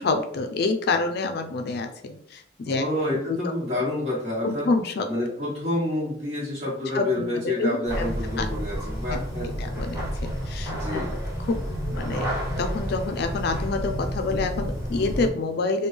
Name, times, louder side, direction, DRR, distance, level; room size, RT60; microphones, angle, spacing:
voice 1, 0.0-3.4 4.4-5.1 6.9-7.1 7.4-8.1 8.4-8.5 9.1-11.1 11.4-11.6 11.9-12.3 12.6-15.9, left 3 dB, 60° left, 6 dB, 0.4 m, -27 dB
voice 2, 2.6-4.7 5.1-9.9 10.8-11.1, left 1 dB, 35° right, -7 dB, 1.3 m, -28 dB
sound 1, 7.8-15.3, equal, 20° right, 1.3 m, -30 dB
3.4 x 2.2 x 3.3 m, 0.67 s
head